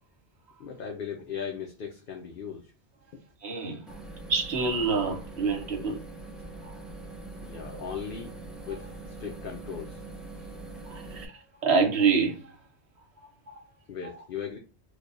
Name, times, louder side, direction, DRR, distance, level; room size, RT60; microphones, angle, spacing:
voice 1, 0.6-2.7 7.4-8.4 8.7-10.0 13.9-14.6, left 7 dB, 60° left, 0.8 m, -38 dB
voice 2, 3.4-4.0 4.3-6.0 6.6-6.8 7.7-7.8 10.8-12.6 13.5-13.6 14.0-14.1, right 5 dB, 80° right, 1.3 m, -27 dB
sound 1, 3.9-11.3, right 2 dB, ahead, 0.5 m, -43 dB
3.2 x 2.3 x 4.0 m
omnidirectional pair, 1.1 m